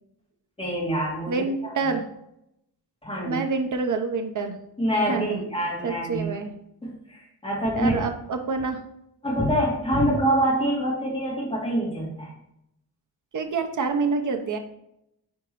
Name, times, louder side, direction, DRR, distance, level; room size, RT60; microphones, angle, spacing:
voice 1, 0.6-1.9 3.0-3.4 4.8-6.4 6.8-7.9 9.2-12.3, right 1 dB, 15° left, -6 dB, 2.6 m, -26 dB
voice 2, 1.3-2.0 3.2-4.6 5.1-5.4 5.8-6.5 7.8-8.8 13.3-14.6, right 4 dB, 50° right, 5 dB, 0.9 m, -27 dB
9.0 x 4.5 x 3.1 m, 0.80 s
wide cardioid pair, 175°, 39 cm